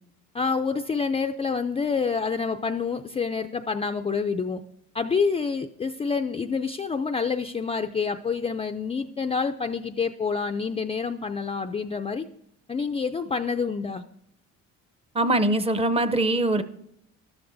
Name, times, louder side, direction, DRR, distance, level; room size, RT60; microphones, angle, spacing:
voice 1, 0.3-4.6 4.9-12.3 12.7-14.0, left 5 dB, 20° left, 8 dB, 0.3 m, -27 dB
voice 2, 15.1-16.6, right 2 dB, 20° right, 13 dB, 0.6 m, -22 dB
13.0 x 12.0 x 2.6 m, 0.75 s
cardioid pair, 105°, 32 cm